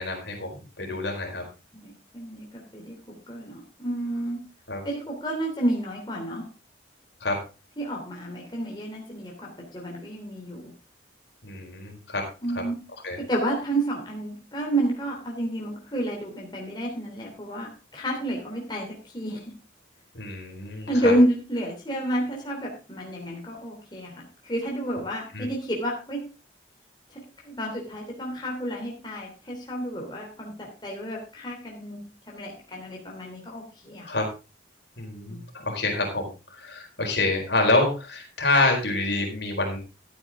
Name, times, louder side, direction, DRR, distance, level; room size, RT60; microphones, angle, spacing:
voice 1, 0.0-1.4 4.7-4.8 7.2-7.4 11.4-12.2 12.5-12.6 13.0-13.2 20.1-21.1 25.3-25.5 34.0-34.3 35.0-39.8, left 2 dB, 60° left, 2 dB, 4.5 m, -27 dB
voice 2, 1.7-4.4 4.8-6.5 7.8-10.7 12.4-12.8 13.1-19.5 20.9-26.2 27.1-34.2 35.3-35.4, right 1 dB, 25° left, -1 dB, 3.1 m, -30 dB
14.0 x 9.2 x 3.7 m, 0.31 s
head